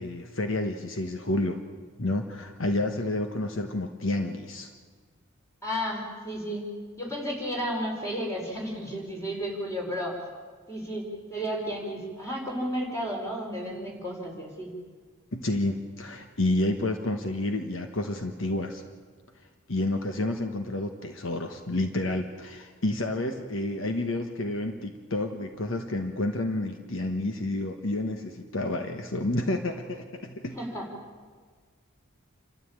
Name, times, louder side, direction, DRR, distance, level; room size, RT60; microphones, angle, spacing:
voice 1, 0.0-1.6 2.0-4.7 15.3-18.8 19.7-30.6, left 2 dB, 65° left, 5 dB, 1.3 m, -30 dB
voice 2, 5.6-6.7 7.0-10.2 10.7-14.7 30.5-30.8, equal, 15° left, -1 dB, 5.0 m, -33 dB
28.0 x 13.0 x 8.9 m, 1.5 s
head